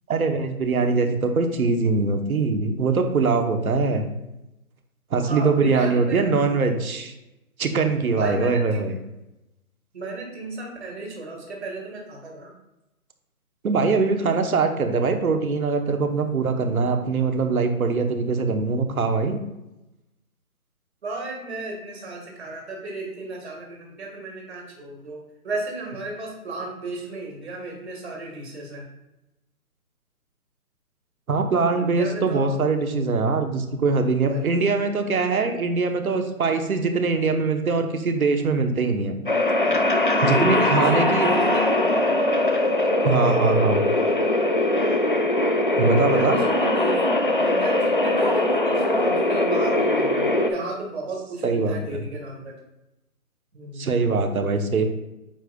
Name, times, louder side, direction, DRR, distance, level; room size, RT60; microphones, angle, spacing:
voice 1, 0.1-4.1 5.1-7.1 7.6-9.0 13.6-19.4 31.3-39.2 40.2-41.3 43.0-43.8 45.8-46.4 51.4-52.0 53.8-54.9, right 4 dB, 75° right, 5 dB, 1.1 m, -22 dB
voice 2, 5.2-6.4 8.2-8.8 9.9-12.5 21.0-28.9 31.8-32.5 34.2-34.5 39.6-39.8 40.2-41.9 43.2-43.6 45.9-47.1 47.4-52.6 53.5-53.8, right 2 dB, 50° right, -1 dB, 1.8 m, -33 dB
sound 1, 39.3-50.5, left 1 dB, 40° left, 0.4 m, -21 dB
9.0 x 5.1 x 2.3 m, 0.95 s
hypercardioid pair, 170°, 43 cm